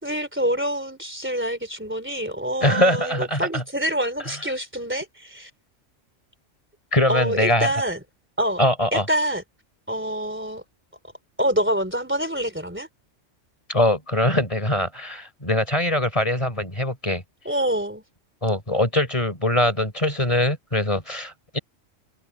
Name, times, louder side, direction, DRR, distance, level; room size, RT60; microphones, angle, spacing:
voice 1, 0.0-5.5 7.1-8.0 8.4-8.6 8.9-9.4 9.9-10.6 11.4-12.9 17.4-18.0, right 1 dB, 10° right, 3.2 m, -26 dB
voice 2, 2.6-3.6 4.3-4.4 6.9-7.7 8.6-9.1 13.7-17.2 18.4-21.6, left 1 dB, 25° left, 4.4 m, -22 dB
open air
omnidirectional pair, 1.3 m